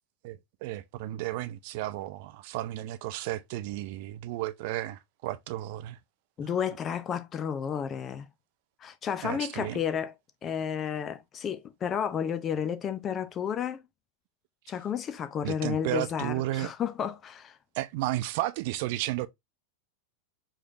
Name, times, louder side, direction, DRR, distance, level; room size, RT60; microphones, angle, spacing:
voice 1, 0.2-6.0 6.4-6.5 9.2-9.8 15.4-16.7 17.8-19.3, right 16 dB, 50° right, 0.3 m, -33 dB
voice 2, 6.4-8.3 8.8-10.1 10.4-13.8 14.7-17.6, left 8 dB, 25° left, 0.5 m, -32 dB
4.8 x 3.1 x 2.6 m
figure-of-eight pair, 90°, 0 cm